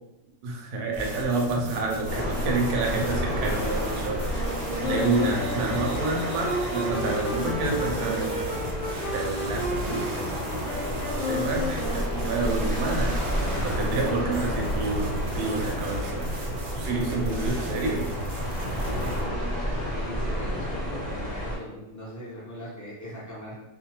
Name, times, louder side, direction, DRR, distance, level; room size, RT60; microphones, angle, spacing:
voice 1, 0.4-8.4 9.1-10.1 11.0-13.1 13.6-16.3 16.8-18.1, right 3 dB, 80° right, 1 dB, 1.1 m, -28 dB
sound 1, 0.9-19.2, right 1 dB, 65° right, 0.6 m, -38 dB
sound 2, 2.1-21.6, equal, ahead, 1.1 m, -31 dB
Wind instrument woodwind instrument, 4.3-13.0, equal, 70° left, 1.0 m, -33 dB
voice 2, 18.9-23.6, equal, 25° left, -8 dB, 0.3 m, -39 dB
2.6 x 2.2 x 2.8 m, 0.96 s
omnidirectional pair, 1.6 m